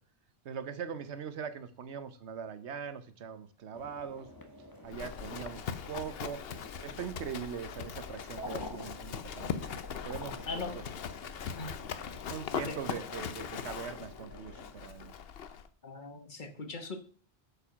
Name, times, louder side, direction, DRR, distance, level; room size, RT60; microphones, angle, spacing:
voice 1, 0.4-4.3 4.8-6.4 6.8-9.5 10.0-10.8 12.3-15.1, right 7 dB, 75° right, 12 dB, 1.1 m, -41 dB
sound 1, 3.7-14.7, left 1 dB, 20° left, 1.3 m, -50 dB
Livestock farm animals working animals, 4.9-15.7, left 7 dB, 60° left, 0.9 m, -40 dB
voice 2, 10.5-10.8 11.6-11.8 12.7-12.8 15.8-17.0, left 3 dB, 45° left, 7 dB, 1.2 m, -39 dB
8.4 x 5.4 x 5.8 m, 0.43 s
omnidirectional pair, 1.2 m